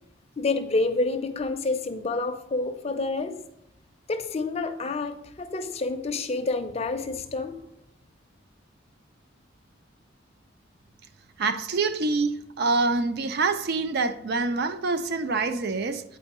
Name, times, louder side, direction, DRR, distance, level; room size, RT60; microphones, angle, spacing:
voice 1, 0.4-3.4 4.1-7.6, left 3 dB, 30° left, 0.5 m, -28 dB
voice 2, 11.4-16.0, right 3 dB, 55° right, 0.4 m, -26 dB
8.3 x 4.4 x 3.0 m
head